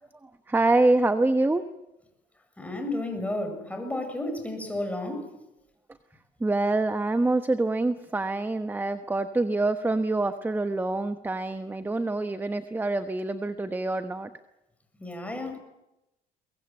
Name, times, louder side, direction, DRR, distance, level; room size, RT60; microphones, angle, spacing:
voice 1, 0.2-1.7 6.4-14.3, right 2 dB, 10° right, 9 dB, 1.1 m, -26 dB
voice 2, 2.6-5.3 15.0-15.6, left 1 dB, 10° left, 5 dB, 7.2 m, -32 dB
23.5 x 21.5 x 9.1 m, 0.91 s
cardioid pair, 110°, 17 cm